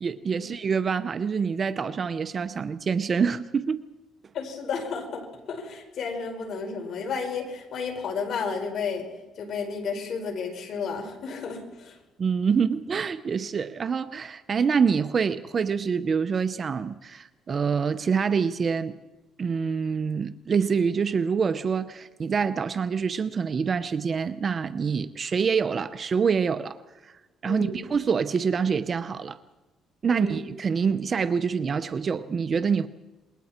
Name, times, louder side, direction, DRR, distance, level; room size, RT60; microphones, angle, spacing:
voice 1, 0.0-3.8 12.2-19.0 19.4-27.1 27.4-29.4 30.0-32.9, right 6 dB, 40° right, 0.7 m, -26 dB
voice 2, 4.3-9.1 9.4-12.0 27.4-27.8 30.1-30.4, left 5 dB, 60° left, 5.1 m, -32 dB
27.5 x 22.0 x 4.4 m
cardioid pair, 105°, 0 cm